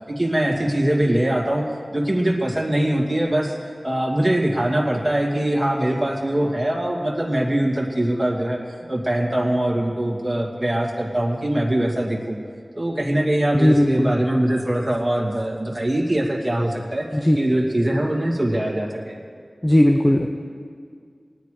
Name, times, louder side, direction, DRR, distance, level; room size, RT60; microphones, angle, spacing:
voice 1, 0.2-1.6 1.9-3.5 3.8-8.6 8.9-12.4 12.7-17.1 17.4-19.2, right 1 dB, 20° right, -2 dB, 2.4 m, -22 dB
voice 2, 13.5-14.2 17.1-17.4 19.6-20.3, left 1 dB, 25° left, 4 dB, 0.8 m, -17 dB
19.5 x 9.6 x 5.0 m, 2.1 s
wide cardioid pair, 50°, 0 cm